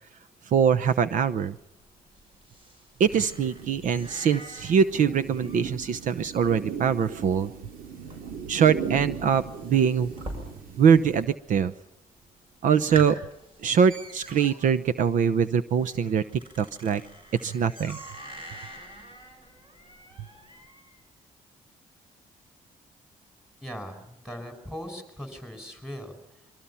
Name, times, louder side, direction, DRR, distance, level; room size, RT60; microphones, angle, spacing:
voice 1, 0.5-1.6 3.0-7.5 8.5-10.1 10.8-11.7 12.6-13.2 13.6-16.2 16.6-17.0 17.4-18.0, right 7 dB, 65° right, 13 dB, 0.8 m, -23 dB
sound 1, 1.7-11.0 11.3-11.9 12.3-12.4 12.7-21.0, right 1 dB, 35° right, 7.0 m, -45 dB
sound 2, 3.0-11.3, right 6 dB, 80° right, 2.7 m, -38 dB
voice 2, 23.6-26.5, equal, 5° right, 6 dB, 5.5 m, -40 dB
28.0 x 24.0 x 5.7 m, 0.82 s
cardioid pair, 150°, 15 cm